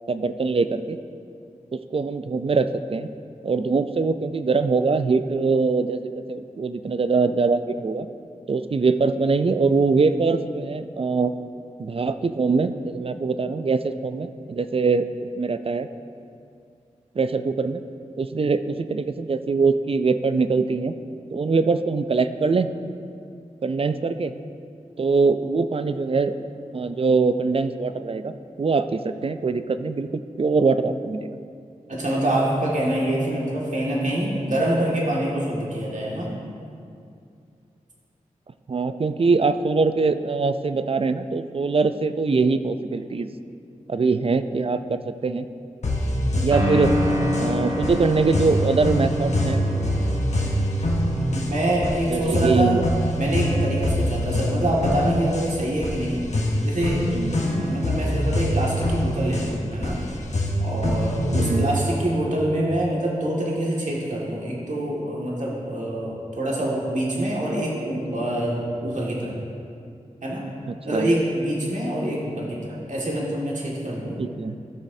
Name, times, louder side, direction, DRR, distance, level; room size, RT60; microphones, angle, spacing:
voice 1, 0.1-1.0 1.7-3.1 3.4-8.1 8.5-11.3 11.8-15.1 15.4-15.9 17.2-17.8 18.2-20.9 21.3-22.7 23.6-24.3 25.0-26.3 26.7-28.3 28.6-31.3 38.7-43.3 43.9-45.5 46.4-46.9 47.4-49.6 52.1-52.8 57.1-57.3 60.8-61.0 61.3-61.7 70.7-71.1 74.2-74.6, right 4 dB, 45° right, 10 dB, 0.4 m, -23 dB
voice 2, 31.9-36.3 51.2-52.8 53.2-56.2 56.6-57.1 57.6-60.0 60.6-69.4 70.2-70.5 70.8-74.2, right 1 dB, 65° right, -4 dB, 1.9 m, -25 dB
sound 1, 45.8-61.8, equal, 60° left, 1.2 m, -25 dB
sound 2, 46.5-51.3, left 1 dB, 25° right, 1.4 m, -28 dB
14.0 x 6.3 x 2.7 m, 2.4 s
cardioid pair, 50°, 14 cm